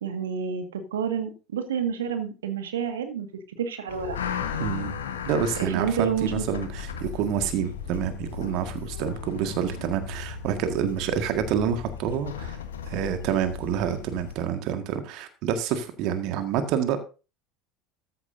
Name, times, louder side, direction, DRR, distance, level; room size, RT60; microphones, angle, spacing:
voice 1, 0.0-3.3 3.6-4.2 5.6-6.4, right 7 dB, 75° right, 7 dB, 1.8 m, -29 dB
sound 1, 3.9-14.4, left 7 dB, 75° left, 1.4 m, -36 dB
voice 2, 4.6-4.9 5.3-12.6 12.9-17.0, right 8 dB, 55° right, 8 dB, 1.7 m, -28 dB
14.0 x 10.5 x 2.7 m, 0.33 s
figure-of-eight pair, 70°, 0 cm